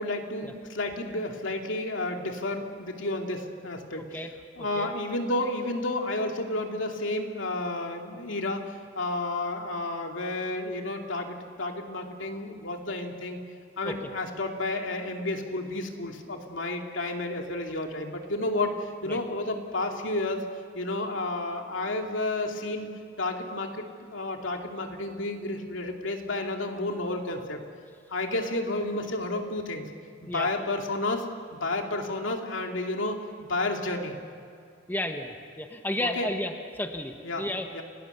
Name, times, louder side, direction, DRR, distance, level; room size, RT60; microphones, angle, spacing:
voice 1, 0.0-4.3 4.6-13.4 13.8-20.4 20.7-22.9 23.2-27.6 28.1-29.9 30.2-31.3 31.5-34.2 36.0-36.3 37.2-37.5 37.7-37.8, left 2 dB, 90° left, 2 dB, 2.7 m, -31 dB
voice 2, 4.6-4.9 13.8-13.9 19.1-19.2 30.3-30.5 34.9-37.8, left 1 dB, 10° left, 4 dB, 1.3 m, -33 dB
30.0 x 19.0 x 6.9 m, 2.3 s
head